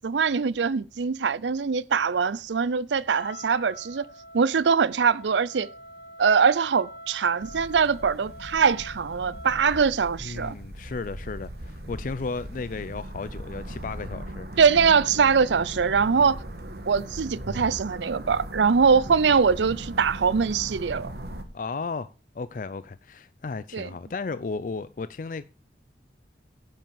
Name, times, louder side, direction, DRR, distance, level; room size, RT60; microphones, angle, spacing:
voice 1, 0.0-4.1 4.3-5.7 6.2-10.5 14.6-16.4 16.9-21.1 23.7-23.9, right 6 dB, 90° right, 0.5 m, -22 dB
Wind instrument woodwind instrument, 3.1-9.9, left 1 dB, 75° left, 1.4 m, -45 dB
sound 1, 7.4-21.4, right 1 dB, 60° right, 1.5 m, -39 dB
voice 2, 10.2-14.6 16.0-16.3 21.5-25.4, left 4 dB, 50° left, 0.4 m, -34 dB
10.5 x 5.7 x 7.1 m
head